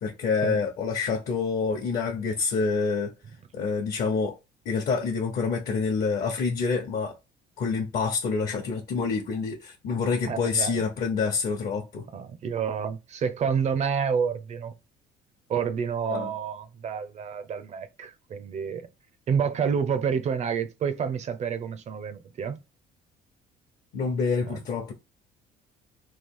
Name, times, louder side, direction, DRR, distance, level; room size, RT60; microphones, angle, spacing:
voice 1, 0.0-3.1 3.5-4.3 4.6-7.1 7.6-12.0 16.1-16.3 23.9-24.9, left 5 dB, 60° left, 0.9 m, -27 dB
voice 2, 10.3-10.8 12.1-14.7 15.5-18.9 19.3-22.6 24.4-24.6, right 6 dB, 45° right, 0.5 m, -29 dB
3.2 x 2.3 x 3.6 m
cardioid pair, 110°, 17 cm